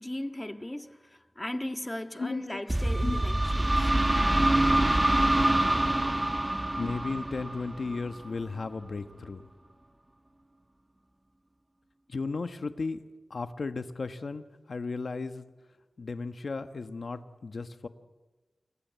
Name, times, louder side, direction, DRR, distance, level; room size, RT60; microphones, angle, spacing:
voice 1, 0.0-3.9, left 1 dB, 15° left, 1.6 m, -37 dB
voice 2, 2.2-2.6 3.0-3.2 6.8-9.4 12.1-13.0 13.3-15.4 16.0-17.9, left 4 dB, 65° left, 1.4 m, -35 dB
sound 1, 2.7-8.3, right 1 dB, 20° right, 1.1 m, -25 dB
29.0 x 23.0 x 8.3 m
wide cardioid pair, 65°, 0 cm